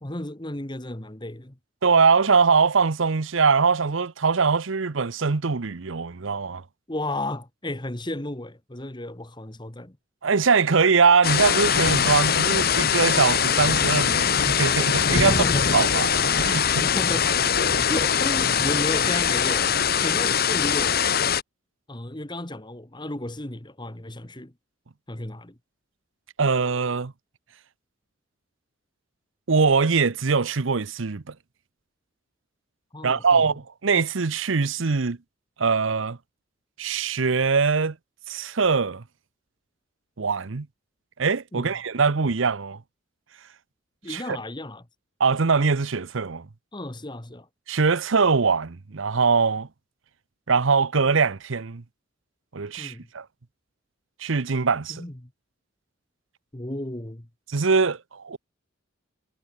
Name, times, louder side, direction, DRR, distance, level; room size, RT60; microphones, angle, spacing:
voice 1, 0.0-1.6 6.9-10.0 15.1-15.9 16.8-21.0 21.9-24.5 25.1-25.6 32.9-33.5 41.5-41.7 44.0-44.9 46.7-47.5 52.8-53.1 54.9-55.3 56.5-57.3, left 1 dB, 20° left, 1.6 m, -33 dB
voice 2, 1.8-6.6 10.2-15.3 15.7-16.6 26.4-27.1 29.5-31.3 33.0-35.2 35.6-36.2 36.8-37.9 38.3-39.0 40.2-40.7 41.2-42.8 44.1-44.4 45.2-46.5 47.7-49.7 50.5-51.8 52.5-53.2 54.2-55.0 57.5-58.4, right 5 dB, 70° right, 0.8 m, -22 dB
sound 1, 11.2-21.4, left 7 dB, 50° left, 1.3 m, -22 dB
head